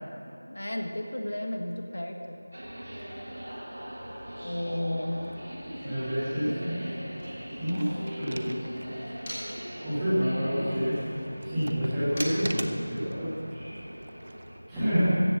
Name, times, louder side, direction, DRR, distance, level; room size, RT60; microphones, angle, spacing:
voice 1, 0.5-2.4 4.4-5.2, left 1 dB, 65° left, 3 dB, 1.4 m, -33 dB
sound 1, 2.5-14.6, equal, 70° right, 3.4 m, -41 dB
Motor vehicle (road), 5.3-9.7 10.0-13.3, equal, 15° left, 3.3 m, -46 dB
voice 2, 5.8-6.9 7.6-8.6 9.8-10.9 11.4-13.8 14.7-15.1, equal, 5° right, -17 dB, 1.9 m, -28 dB
sound 2, 7.5-8.9 9.3-9.4 11.3-13.1 14.0-14.5, right 1 dB, 40° right, 0.6 m, -38 dB
14.5 x 8.2 x 7.5 m, 2.8 s
figure-of-eight pair, 180°, 0 cm